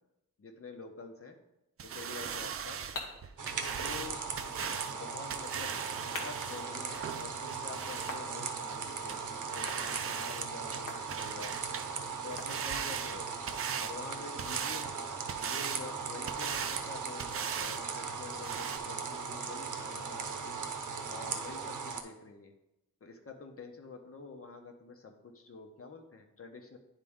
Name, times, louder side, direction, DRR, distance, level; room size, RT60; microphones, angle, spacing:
voice 1, 0.4-1.4 1.8-2.9 3.7-4.2 4.9-5.8 6.1-11.6 12.2-13.4 13.8-15.0 15.4-17.2 17.5-20.6 21.1-22.5 23.0-26.8, left 4 dB, 45° left, 4 dB, 1.0 m, -47 dB
sound 1, 1.8-8.2 8.7-8.8 9.1-9.2 9.5-10.5 10.7-11.9 12.2-13.9 14.4-14.9 15.3-15.8 16.3-16.9 17.2-17.8 18.1-18.2 18.4-18.8, right 7 dB, 45° right, 0.4 m, -39 dB
sound 2, 2.2-13.1, left 2 dB, 80° left, 1.2 m, -49 dB
sound 3, 3.4-22.0, right 5 dB, 70° right, 0.8 m, -38 dB
9.9 x 3.8 x 3.6 m, 0.90 s
wide cardioid pair, 90°, 32 cm